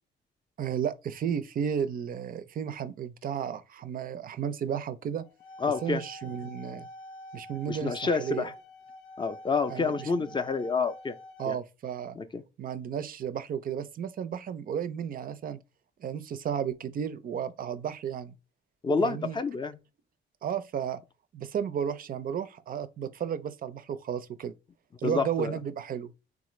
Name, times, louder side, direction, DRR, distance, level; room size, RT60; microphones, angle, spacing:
voice 1, 0.6-5.2 5.8-6.9 7.3-8.5 9.7-10.1 11.4-12.2 12.6-15.6 16.0-18.3 19.0-19.4 20.4-21.0 21.3-24.5 25.0-26.1, right 8 dB, 45° right, 0.4 m, -33 dB
sound 1, 5.2-11.5, left 1 dB, 85° left, 0.4 m, -47 dB
voice 2, 5.6-6.0 7.7-8.5 9.2-11.1 11.5-11.6 12.2-12.4 18.8-19.8 25.0-25.5, left 4 dB, 25° left, 0.4 m, -28 dB
3.6 x 2.4 x 3.0 m
cardioid pair, 90°, 20 cm